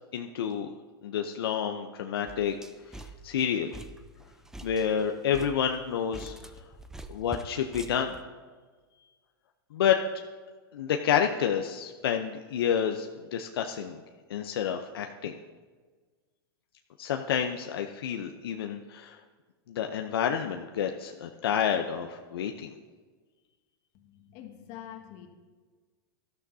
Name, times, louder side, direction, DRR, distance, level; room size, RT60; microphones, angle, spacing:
voice 1, 0.1-0.7 1.0-2.5 2.9-3.7 4.6-6.4 7.1-8.2 9.7-10.0 10.7-14.0 14.3-15.3 17.0-19.2 19.7-22.7, left 8 dB, 85° left, 4 dB, 0.7 m, -29 dB
sound 1, 2.3-8.2, right 2 dB, 5° right, 0.6 m, -45 dB
voice 2, 23.9-25.3, left 11 dB, 55° left, 3 dB, 1.7 m, -45 dB
18.5 x 13.0 x 2.7 m, 1.4 s
hypercardioid pair, 125°, 12 cm